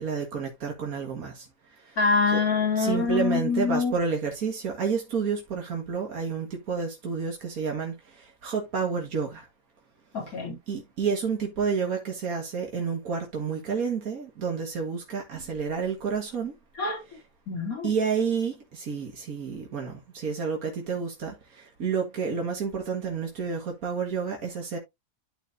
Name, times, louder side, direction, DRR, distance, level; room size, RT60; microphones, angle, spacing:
voice 1, 0.0-1.5 2.3-2.4 2.8-7.9 8.4-9.4 10.7-16.5 17.8-24.8, right 5 dB, 85° right, 2.1 m, -30 dB
voice 2, 2.0-3.9 10.1-10.6 16.8-17.0 17.5-17.9, left 4 dB, 80° left, 3.4 m, -25 dB
12.5 x 4.3 x 2.6 m
omnidirectional pair, 1.5 m